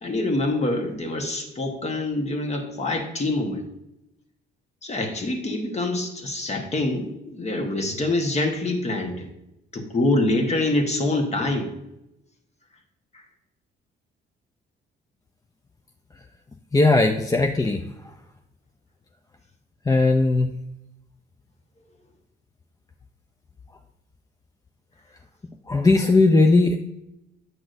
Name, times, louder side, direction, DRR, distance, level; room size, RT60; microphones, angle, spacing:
voice 1, 0.0-3.6 4.8-9.3 9.7-11.7, left 2 dB, 35° left, 3 dB, 1.2 m, -25 dB
voice 2, 16.7-17.8 19.9-20.5 25.7-26.8, left 3 dB, 20° left, 5 dB, 0.4 m, -18 dB
7.8 x 6.0 x 2.6 m, 0.88 s
cardioid pair, 90°, 20 cm